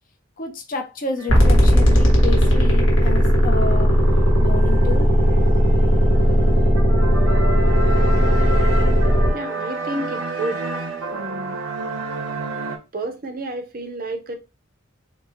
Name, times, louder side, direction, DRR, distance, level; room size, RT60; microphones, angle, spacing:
voice 1, 0.4-4.0 4.4-5.1, left 3 dB, 40° left, 0.6 m, -30 dB
sound 1, 1.2-12.8, right 2 dB, 90° right, 0.7 m, -31 dB
sound 2, 1.3-9.3, equal, 70° left, 1.1 m, -16 dB
voice 2, 9.3-10.6 11.1-11.6 12.9-14.3, right 2 dB, 45° right, 0.6 m, -30 dB
3.7 x 2.4 x 2.9 m
head